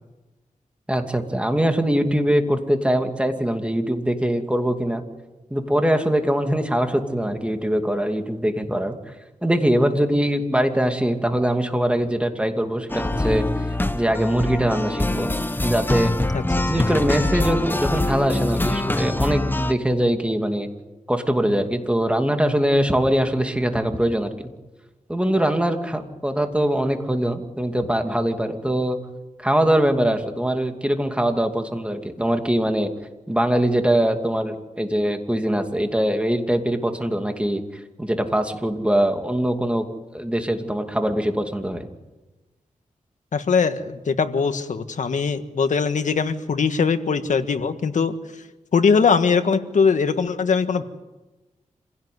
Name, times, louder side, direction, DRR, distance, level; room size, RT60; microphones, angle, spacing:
voice 1, 0.9-5.0 5.5-9.0 9.4-13.4 13.9-15.3 15.6-16.1 16.7-20.7 21.1-24.3 25.1-29.0 29.4-32.9 33.3-37.6 38.0-39.9 40.1-41.9, right 1 dB, 10° right, 5 dB, 2.6 m, -22 dB
sound 1, 12.9-19.7, left 2 dB, 15° left, 1.0 m, -24 dB
voice 2, 43.3-48.1 48.7-50.8, left 5 dB, 70° left, 9 dB, 1.6 m, -21 dB
27.5 x 17.0 x 9.5 m, 1.1 s
wide cardioid pair, 85°, 13 cm